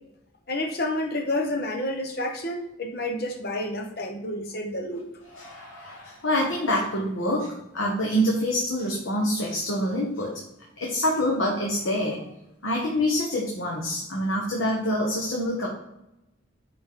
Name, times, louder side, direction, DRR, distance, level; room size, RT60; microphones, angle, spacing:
voice 1, 0.5-5.1, left 1 dB, 50° left, 4 dB, 1.0 m, -29 dB
voice 2, 5.3-10.3 10.8-12.2 12.6-15.7, equal, 75° left, -3 dB, 1.4 m, -26 dB
8.9 x 4.2 x 3.8 m, 0.87 s
head